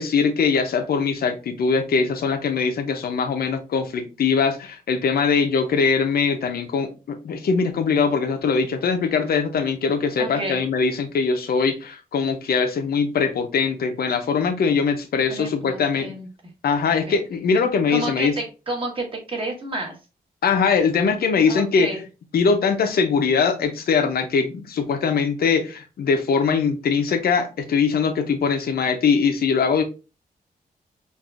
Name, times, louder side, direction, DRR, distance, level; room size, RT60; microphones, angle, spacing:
voice 1, 0.0-16.1 16.6-18.3 20.4-21.9 22.3-29.8, left 5 dB, 75° left, 0.7 m, -21 dB
voice 2, 10.2-10.6 15.3-16.3 16.9-17.2 17.9-20.0 21.4-22.0, right 2 dB, 35° right, 1.4 m, -31 dB
5.4 x 2.6 x 2.4 m
wide cardioid pair, 135°, 16 cm